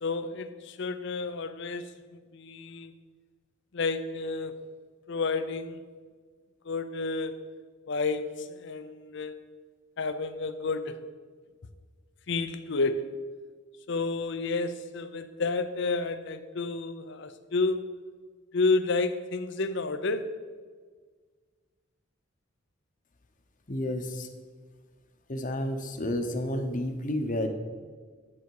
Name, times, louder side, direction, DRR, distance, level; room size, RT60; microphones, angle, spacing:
voice 1, 0.0-2.9 3.7-4.6 5.1-5.8 6.6-7.5 7.9-9.3 10.0-11.1 12.3-13.1 13.9-17.9 18.5-20.4, left 3 dB, 65° left, 11 dB, 0.6 m, -30 dB
voice 2, 23.7-24.3 25.3-27.5, left 1 dB, 40° left, 6 dB, 1.0 m, -30 dB
11.0 x 7.9 x 4.7 m, 1.5 s
head